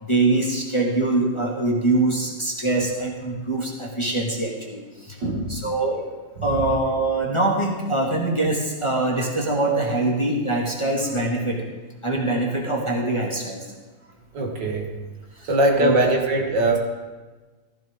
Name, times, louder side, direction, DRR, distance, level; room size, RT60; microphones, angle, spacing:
voice 1, 0.0-5.2 5.5-6.0 6.4-11.6 12.0-13.6 15.4-15.5 15.8-16.0, right 2 dB, 15° left, -2 dB, 1.7 m, -23 dB
voice 2, 5.2-5.6 6.4-6.5 14.3-15.0 15.4-16.8, right 2 dB, 65° right, 2 dB, 2.1 m, -21 dB
15.0 x 14.5 x 3.7 m, 1.3 s
omnidirectional pair, 2.1 m